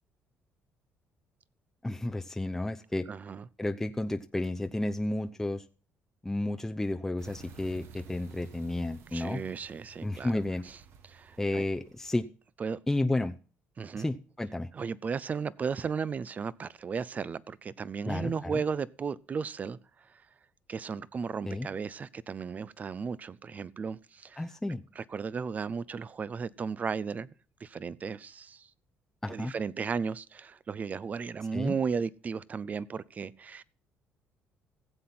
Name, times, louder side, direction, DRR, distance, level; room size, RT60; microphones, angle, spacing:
voice 1, 1.8-3.1 3.6-5.6 6.2-9.4 10.0-10.6 11.4-12.3 12.9-13.3 14.0-14.7 18.1-18.6 21.4-21.7 24.4-24.8 29.2-29.5 31.5-31.8, left 2 dB, 10° left, 0.7 m, -32 dB
voice 2, 3.1-3.4 9.1-10.4 11.0-11.7 12.6-12.8 13.8-14.1 14.7-20.2 20.7-24.4 25.0-27.3 27.6-28.7 29.3-33.6, right 5 dB, 35° right, 0.7 m, -35 dB
sound 1, 7.2-12.2, right 5 dB, 65° right, 1.5 m, -53 dB
15.5 x 7.7 x 5.9 m
cardioid pair, 95°, 4 cm